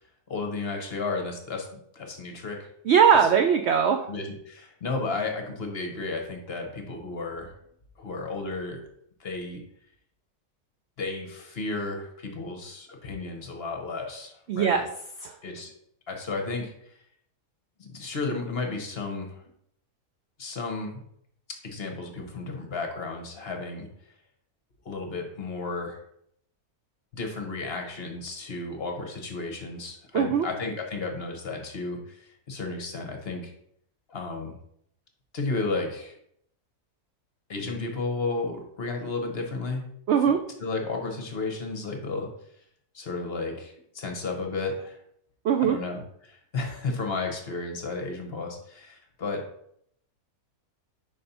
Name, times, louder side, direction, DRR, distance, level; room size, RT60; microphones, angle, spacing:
voice 1, 0.3-2.7 4.1-7.6 8.0-8.9 9.2-9.6 11.0-14.8 15.4-15.7 16.1-17.0 17.8-19.4 20.4-21.0 21.5-23.9 24.8-26.0 27.1-33.5 34.1-34.6 35.3-36.2 37.5-39.9 40.6-42.3 42.9-45.0 45.6-49.5, left 3 dB, 45° left, 4 dB, 1.0 m, -33 dB
voice 2, 2.9-4.1 14.5-14.9 15.2-15.4 30.1-30.5 40.1-40.4 45.4-45.8, right 7 dB, 75° right, 6 dB, 0.6 m, -20 dB
5.3 x 4.2 x 5.4 m, 0.71 s
omnidirectional pair, 1.6 m